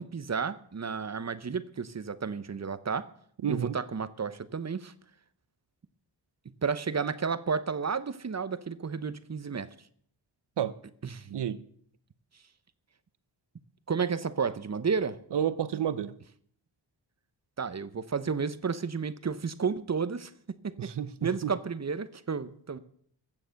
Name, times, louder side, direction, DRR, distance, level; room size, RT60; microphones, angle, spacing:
voice 1, 0.0-3.1 3.5-4.9 6.6-9.7 11.1-11.4 13.9-15.2 17.6-20.3 20.6-20.9 21.2-22.8, right 5 dB, 35° right, 0.9 m, -32 dB
voice 2, 3.4-3.8 10.6-10.8 11.3-11.6 15.3-16.1 20.8-21.5, right 9 dB, 60° right, 0.9 m, -30 dB
15.0 x 7.1 x 6.5 m
cardioid pair, 55°, 45 cm